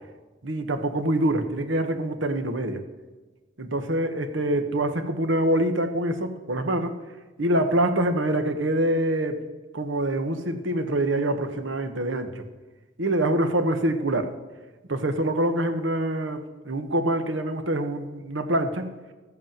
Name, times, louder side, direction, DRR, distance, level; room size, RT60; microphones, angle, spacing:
voice 1, 0.4-2.8 3.6-7.0 7.4-9.4 9.7-12.4 13.0-14.3 14.9-18.9, right 1 dB, 70° right, 8 dB, 1.4 m, -25 dB
14.0 x 8.5 x 7.5 m, 1.3 s
head